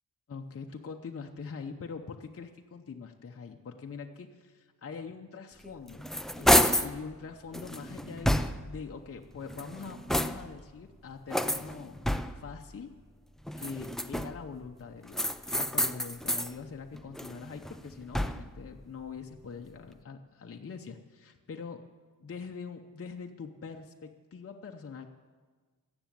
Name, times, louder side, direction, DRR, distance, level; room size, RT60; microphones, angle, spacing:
voice 1, 0.3-6.1 6.3-12.0 12.3-12.9 13.6-21.8 22.2-25.1, left 5 dB, 40° left, 3 dB, 0.8 m, -43 dB
sound 1, 5.6-7.0 7.5-8.8 9.4-10.6 11.3-12.6 13.5-14.5 15.1-16.5 16.9-18.6, equal, ahead, 0.4 m, -29 dB
14.5 x 7.0 x 9.1 m, 1.4 s
wide cardioid pair, 105°, 36 cm